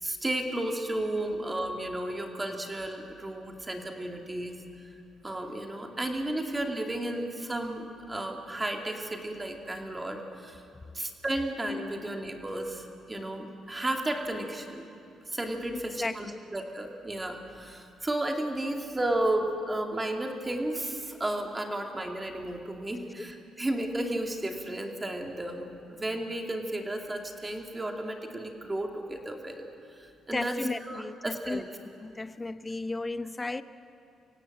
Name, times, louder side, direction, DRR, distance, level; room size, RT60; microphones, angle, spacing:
voice 1, 0.0-4.6 5.2-10.6 10.9-14.9 15.3-31.6, right 1 dB, 20° right, 2 dB, 2.5 m, -33 dB
voice 2, 15.7-16.4 30.3-31.6 32.0-33.6, left 2 dB, 20° left, 13 dB, 0.7 m, -34 dB
25.0 x 17.0 x 7.6 m, 2.5 s
cardioid pair, 90°, 0 cm